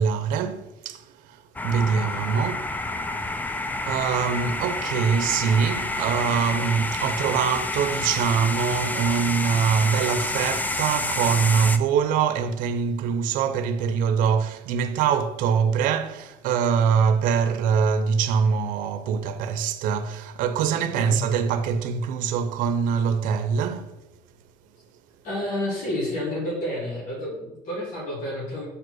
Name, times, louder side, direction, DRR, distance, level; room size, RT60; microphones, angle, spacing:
voice 1, 0.0-2.7 3.2-24.0, right 6 dB, 80° right, 0.6 m, -24 dB
sound 1, 1.6-11.8, left 2 dB, 10° left, 0.5 m, -29 dB
voice 2, 20.7-21.2 25.2-28.6, left 1 dB, 65° left, 2.8 m, -30 dB
5.0 x 5.0 x 6.3 m
cardioid pair, 125°, 14 cm